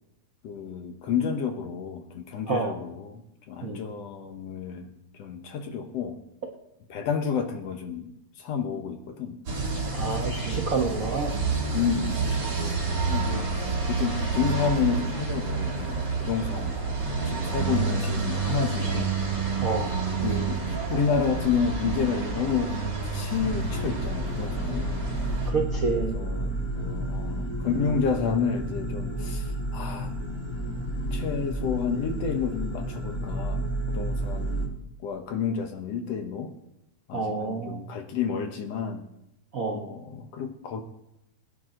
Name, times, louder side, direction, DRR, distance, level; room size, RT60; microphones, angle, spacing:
voice 1, 0.4-4.9 5.2-6.2 6.9-8.1 8.4-9.4 10.5-11.1 11.7-16.7 17.2-19.2 20.2-22.8 23.1-25.1 25.9-30.1 31.1-36.5 37.1-39.0 39.7-40.8, left 6 dB, 65° left, 6 dB, 2.0 m, -30 dB
sound 1, 9.5-25.5, right 4 dB, 35° right, 4.4 m, -29 dB
voice 2, 9.9-11.3 16.6-16.9 19.6-19.9 25.5-26.2 37.1-37.8 39.5-39.8, right 4 dB, 75° right, 1 dB, 0.7 m, -29 dB
sound 2, 23.4-34.7, right 1 dB, 30° left, 0.5 m, -31 dB
21.5 x 9.7 x 3.9 m, 0.84 s
omnidirectional pair, 3.5 m